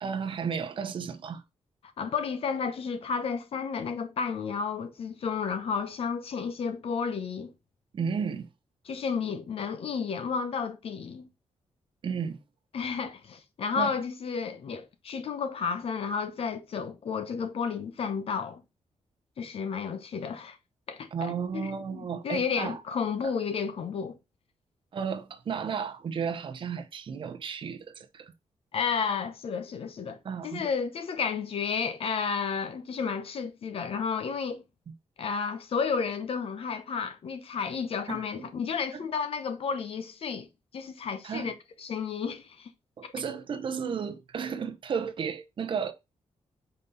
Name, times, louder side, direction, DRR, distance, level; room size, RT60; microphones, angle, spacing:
voice 1, 0.0-1.4 7.9-8.5 12.0-12.4 13.8-13.9 21.1-22.8 24.9-28.3 30.2-30.7 38.1-38.5 38.9-39.1 41.2-41.6 43.0-45.9, right 6 dB, 45° right, 0.8 m, -33 dB
voice 2, 2.0-7.5 8.9-11.3 12.7-18.6 19.4-20.6 20.9-24.2 28.7-34.6 35.2-40.5 40.7-41.5 41.8-42.7 43.0-43.1, left 6 dB, 55° left, 0.8 m, -32 dB
5.2 x 4.0 x 5.4 m
wide cardioid pair, 170°, 12 cm